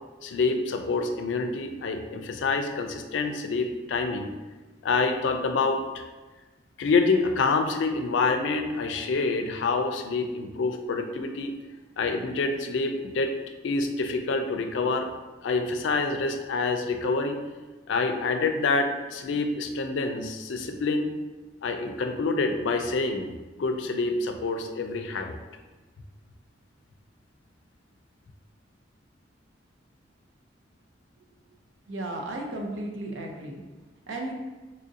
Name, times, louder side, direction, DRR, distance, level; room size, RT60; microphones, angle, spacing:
voice 1, 0.2-4.3 4.8-6.1 6.8-11.5 12.0-13.3 13.6-15.1 15.4-17.4 17.9-21.1 21.6-23.3 23.6-25.4, left 3 dB, 70° left, 6 dB, 0.4 m, -27 dB
voice 2, 31.9-33.6 34.1-34.3, right 1 dB, 85° right, 1 dB, 0.6 m, -34 dB
4.2 x 2.5 x 2.7 m, 1.2 s
head